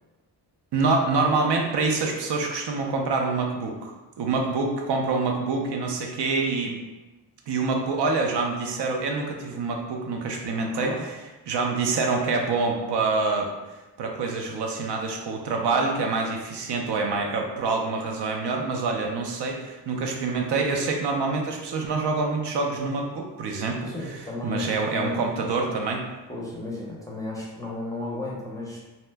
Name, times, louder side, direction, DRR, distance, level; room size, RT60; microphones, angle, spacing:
voice 1, 0.7-6.8 7.5-11.1 11.5-13.5 14.0-24.2 24.4-26.0, right 3 dB, 75° right, 1 dB, 0.6 m, -26 dB
voice 2, 10.5-11.1 23.9-25.4 26.3-28.8, left 2 dB, 10° left, -4 dB, 0.5 m, -34 dB
2.8 x 2.1 x 3.3 m, 1.1 s
wide cardioid pair, 140°, 41 cm